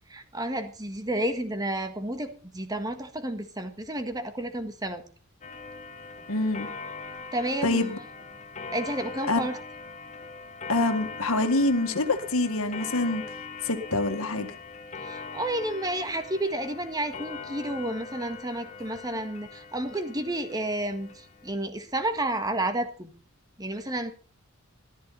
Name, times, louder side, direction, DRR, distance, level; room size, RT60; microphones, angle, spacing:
voice 1, 0.1-5.0 7.3-7.9 8.7-9.6 15.0-23.1 23.6-24.1, right 1 dB, 20° right, 8 dB, 1.6 m, -31 dB
Clock, 5.4-21.5, left 4 dB, 35° left, 1.4 m, -41 dB
voice 2, 6.3-6.7 7.6-8.0 9.3-9.4 10.7-13.2 13.7-14.5, left 2 dB, 85° left, 8 dB, 1.9 m, -25 dB
14.5 x 13.5 x 4.2 m, 0.39 s
head